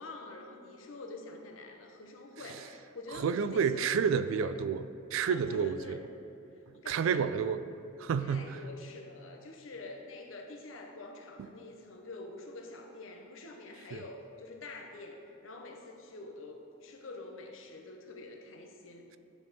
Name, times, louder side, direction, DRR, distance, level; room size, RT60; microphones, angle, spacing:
voice 1, 0.0-4.6 5.2-6.0 6.8-7.3 8.2-19.1, left 2 dB, 80° left, 2 dB, 0.8 m, -46 dB
voice 2, 3.1-6.0 6.9-7.6 8.0-8.6 13.9-14.0, right 6 dB, 75° right, 12 dB, 0.3 m, -30 dB
10.0 x 3.5 x 4.1 m, 2.9 s
head